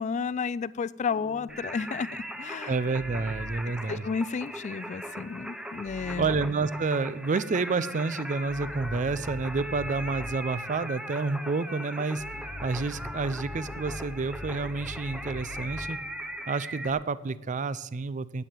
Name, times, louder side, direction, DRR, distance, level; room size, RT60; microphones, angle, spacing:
voice 1, 0.0-2.7 3.9-6.3, left 5 dB, 35° left, 0.3 m, -32 dB
sound 1, 1.1-3.8 5.8-6.7 7.5-10.5 12.2-16.0, left 2 dB, 85° left, 1.2 m, -43 dB
Singing, 1.5-16.9, equal, 5° right, 0.7 m, -39 dB
voice 2, 2.7-4.1 6.2-12.2 12.6-16.0 16.5-18.4, right 4 dB, 35° right, 0.4 m, -29 dB
10.5 x 8.5 x 7.4 m
head